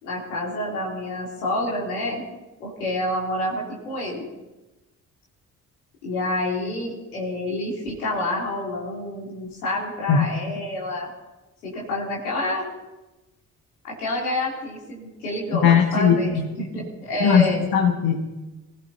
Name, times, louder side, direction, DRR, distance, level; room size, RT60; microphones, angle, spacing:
voice 1, 0.0-2.3 2.6-4.2 6.0-11.1 11.6-12.6 13.8-17.6, left 1 dB, 90° left, -4 dB, 3.3 m, -28 dB
voice 2, 15.6-16.5 17.2-17.5 17.7-18.3, left 7 dB, 55° left, 2 dB, 1.5 m, -18 dB
24.5 x 16.0 x 2.9 m, 1.1 s
hypercardioid pair, 40°, 43 cm